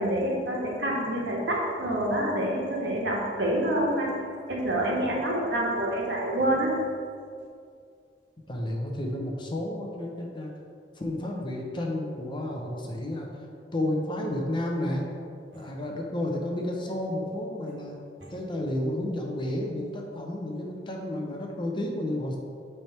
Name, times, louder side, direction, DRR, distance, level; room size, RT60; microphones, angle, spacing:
voice 1, 0.0-4.1 4.5-6.7, right 1 dB, 75° right, -3 dB, 1.5 m, -27 dB
voice 2, 8.5-10.5 11.0-13.3 13.7-15.1 15.5-18.0 18.3-22.4, left 1 dB, 25° left, 0 dB, 0.8 m, -31 dB
8.7 x 3.5 x 4.4 m, 2.3 s
head